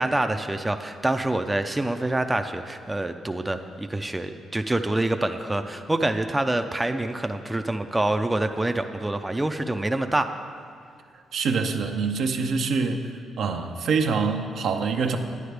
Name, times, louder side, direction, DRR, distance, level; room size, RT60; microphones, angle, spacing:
voice 1, 0.0-10.3, right 1 dB, 15° right, 7 dB, 0.4 m, -26 dB
voice 2, 11.3-13.1 13.4-15.2, right 5 dB, 70° right, 4 dB, 0.6 m, -25 dB
9.4 x 9.3 x 3.4 m, 2.2 s
supercardioid pair, 70°, 0 cm